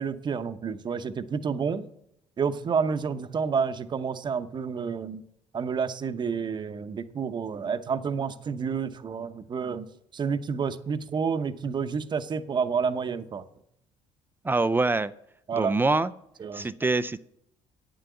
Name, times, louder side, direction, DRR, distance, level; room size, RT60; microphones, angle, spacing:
voice 1, 0.0-1.9 2.4-5.2 5.5-9.9 10.1-13.4 15.5-15.7 16.4-16.7, right 6 dB, 40° right, 10 dB, 0.8 m, -29 dB
voice 2, 14.4-15.1 15.5-16.1 16.5-17.2, right 3 dB, 15° right, 15 dB, 0.4 m, -24 dB
8.8 x 7.7 x 8.3 m, 0.77 s
supercardioid pair, 80°, 12 cm